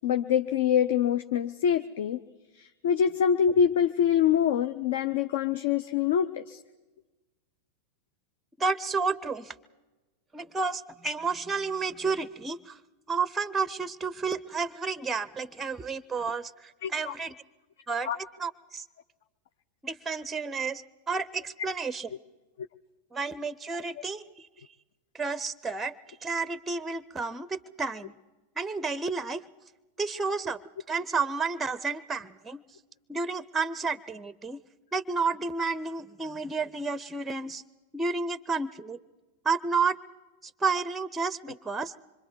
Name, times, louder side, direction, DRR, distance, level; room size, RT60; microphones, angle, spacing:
voice 1, 0.0-2.2 2.6-6.6 16.8-17.1 18.0-18.2, left 8 dB, 55° left, 10 dB, 0.7 m, -25 dB
voice 2, 8.6-9.5 10.3-12.8 13.1-17.3 17.9-18.8 19.8-22.1 23.1-24.5 25.1-26.0 26.2-28.1 28.6-29.4 30.0-30.6 30.9-32.6 33.1-34.6 34.9-37.6 37.9-39.0 39.4-40.0 40.4-41.9, right 4 dB, 10° right, 18 dB, 0.6 m, -31 dB
26.0 x 24.0 x 4.7 m, 1.1 s
figure-of-eight pair, 90°, 0 cm